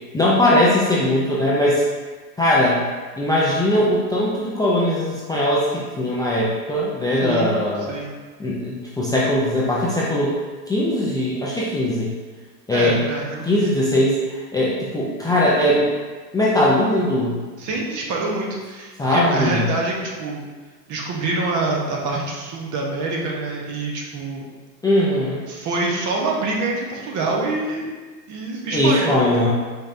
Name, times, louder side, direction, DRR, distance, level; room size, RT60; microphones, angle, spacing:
voice 1, 0.1-1.8 2.4-2.8 3.2-7.9 8.4-10.3 10.7-12.1 12.7-13.0 13.4-15.9 16.3-17.4 19.0-19.6 24.8-25.4 28.7-29.5, left 1 dB, 10° left, -7 dB, 0.5 m, -20 dB
voice 2, 7.2-8.1 12.7-13.7 17.6-20.4 20.9-24.5 25.5-27.9 28.3-29.5, right 3 dB, 40° right, -1 dB, 1.1 m, -26 dB
5.2 x 3.8 x 2.7 m, 1.4 s
hypercardioid pair, 100°, 48 cm